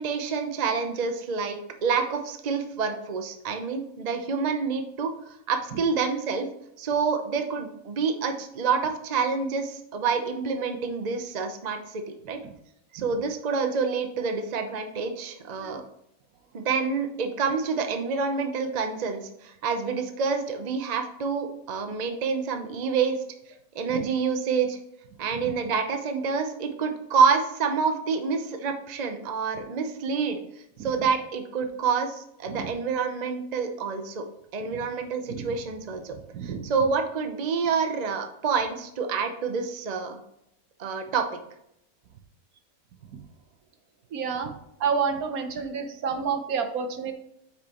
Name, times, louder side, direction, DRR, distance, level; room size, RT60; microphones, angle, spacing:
voice 1, 0.0-6.5 6.8-12.0 12.3-12.4 12.9-15.8 16.5-23.2 23.7-24.8 25.2-30.4 30.8-34.2 34.5-36.1 36.4-40.2 40.8-41.2, right 5 dB, 35° right, 6 dB, 0.7 m, -27 dB
voice 2, 36.3-36.7 44.1-44.5 44.8-47.1, right 6 dB, 80° right, 7 dB, 1.3 m, -29 dB
8.0 x 6.2 x 3.0 m, 0.77 s
omnidirectional pair, 1.5 m